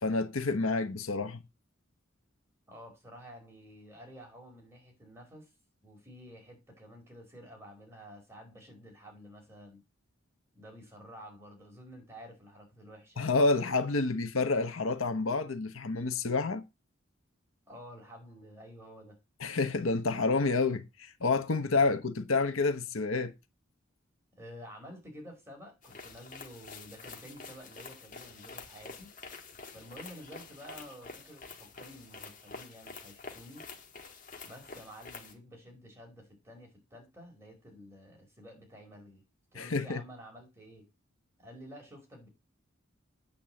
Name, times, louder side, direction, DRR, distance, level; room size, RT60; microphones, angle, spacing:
voice 1, 0.0-1.4 13.2-16.6 19.4-23.3 39.6-40.0, left 3 dB, 85° left, 1.0 m, -29 dB
voice 2, 2.7-5.5 5.8-9.8 10.5-13.3 17.7-19.2 21.9-22.0 24.4-29.1 29.7-33.7 34.4-39.2 39.5-40.9 41.4-42.3, equal, 15° right, 4.7 m, -50 dB
sound 1, 25.8-35.3, left 4 dB, 40° left, 1.9 m, -48 dB
8.8 x 5.3 x 7.6 m
head